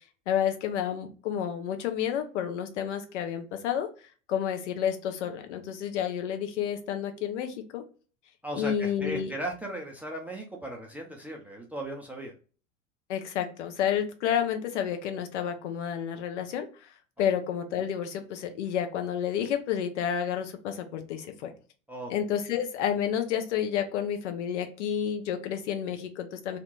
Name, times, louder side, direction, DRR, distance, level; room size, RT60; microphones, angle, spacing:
voice 1, 0.3-3.9 4.3-7.8 8.6-9.3 13.1-16.7 17.2-21.5 22.1-26.6, left 9 dB, 60° left, 7 dB, 0.8 m, -30 dB
voice 2, 8.4-12.3 17.2-17.3 21.9-22.1, right 1 dB, 5° right, 0 dB, 0.5 m, -37 dB
2.8 x 2.2 x 3.9 m, 0.37 s
figure-of-eight pair, 80°, 40 cm